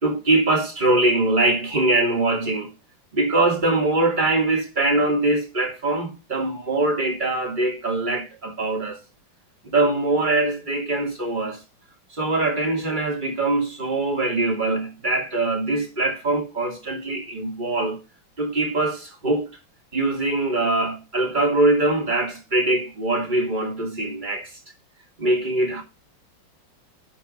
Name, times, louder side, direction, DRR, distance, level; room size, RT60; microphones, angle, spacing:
voice 1, 0.0-2.7 3.1-9.0 9.7-11.6 12.2-18.0 18.4-19.5 19.9-24.5 25.2-25.8, right 2 dB, 20° right, 2.9 m, -22 dB
11.5 x 4.6 x 5.6 m
omnidirectional pair, 2.3 m